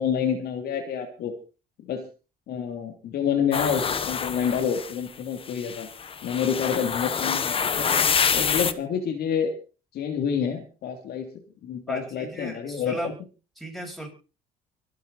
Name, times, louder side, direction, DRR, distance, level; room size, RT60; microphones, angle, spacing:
voice 1, 0.0-1.3 1.8-2.1 2.5-5.9 6.2-7.9 8.3-9.5 9.9-11.3 11.6-13.0, left 7 dB, 70° left, 4 dB, 3.0 m, -28 dB
sound 1, 3.5-4.9 5.5-8.7, left 6 dB, 35° left, 1.1 m, -26 dB
voice 2, 11.9-13.2 13.6-14.1, right 1 dB, ahead, 2 dB, 7.2 m, -35 dB
25.0 x 9.0 x 4.2 m, 0.35 s
cardioid pair, 110°, 17 cm